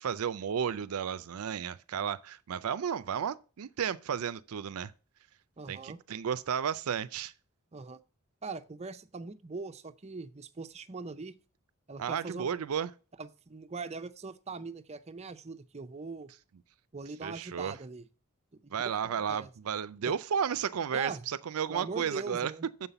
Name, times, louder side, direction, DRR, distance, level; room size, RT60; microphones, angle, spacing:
voice 1, 0.0-4.9 5.7-7.3 12.0-12.9 17.2-17.7 18.7-22.5, right 7 dB, 80° right, 0.5 m, -33 dB
voice 2, 5.6-6.0 7.7-8.0 8.4-11.4 11.9-12.5 13.2-16.3 16.9-18.0 18.5-18.7 19.0-19.5 20.1-20.2 20.9-21.2 21.7-22.7, right 4 dB, 30° right, 0.6 m, -41 dB
7.3 x 5.6 x 6.8 m
head